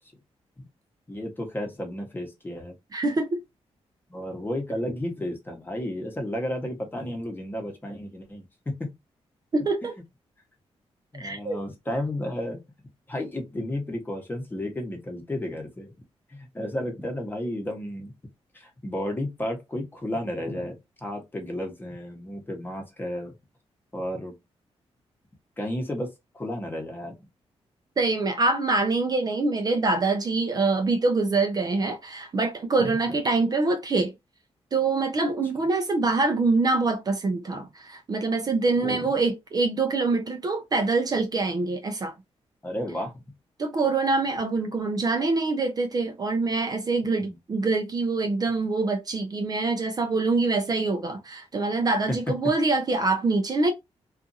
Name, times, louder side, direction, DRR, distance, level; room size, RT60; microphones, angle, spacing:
voice 1, 1.1-2.7 4.1-8.5 8.8-8.9 11.1-12.6 13.1-15.9 16.3-18.1 18.5-23.3 23.9-24.3 25.6-26.1 26.3-27.2 32.8-33.0 38.8-39.1 42.6-43.1 47.2-47.4, left 1 dB, 20° left, 1.0 m, -32 dB
voice 2, 2.9-3.3 9.5-9.9 11.2-11.6 28.0-34.1 34.7-42.1 43.6-53.7, right 3 dB, 35° right, 0.5 m, -25 dB
2.6 x 2.4 x 2.6 m
cardioid pair, 110°, 11 cm